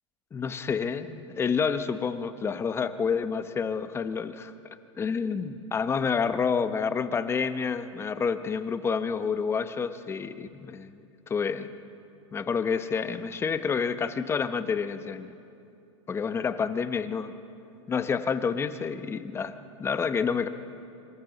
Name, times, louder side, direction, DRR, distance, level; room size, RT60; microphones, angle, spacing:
voice 1, 0.3-4.5 5.0-10.9 11.3-11.7 12.3-15.3 16.1-17.3 17.9-20.5, left 6 dB, 15° left, 11 dB, 0.8 m, -29 dB
26.0 x 25.0 x 4.0 m, 2.6 s
hypercardioid pair, 135°, 17 cm